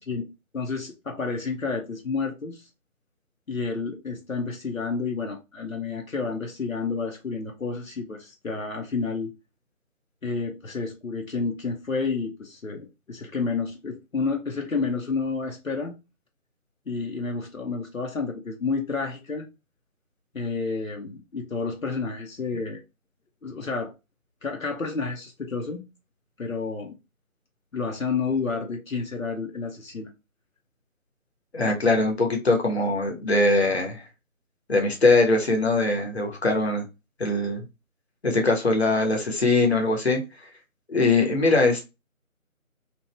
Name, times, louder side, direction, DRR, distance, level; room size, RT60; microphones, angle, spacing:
voice 1, 0.1-2.7 3.5-9.3 10.2-15.9 16.9-19.5 20.3-22.8 23.4-23.9 24.4-25.8 26.4-26.9 27.7-30.1, left 4 dB, 70° left, 0.9 m, -30 dB
voice 2, 31.5-34.0 34.7-36.8 37.2-37.6 38.2-40.2 40.9-41.9, left 2 dB, 50° left, 1.0 m, -22 dB
2.9 x 2.5 x 3.1 m
figure-of-eight pair, 165°, 42 cm